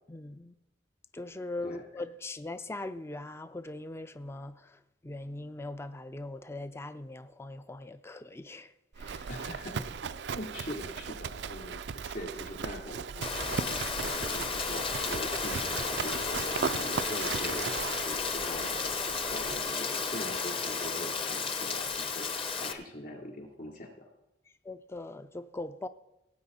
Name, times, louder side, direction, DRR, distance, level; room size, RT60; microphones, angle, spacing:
voice 1, 0.1-0.5 1.1-9.3 24.6-25.9, left 2 dB, 15° left, 0.4 m, -41 dB
Livestock farm animals working animals, 9.0-19.7, right 6 dB, 75° right, 0.4 m, -37 dB
voice 2, 9.3-18.9 19.3-23.9, equal, 55° left, 3.3 m, -42 dB
Rain, 13.2-22.7, left 5 dB, 30° left, 0.8 m, -33 dB
18.0 x 8.8 x 4.2 m
head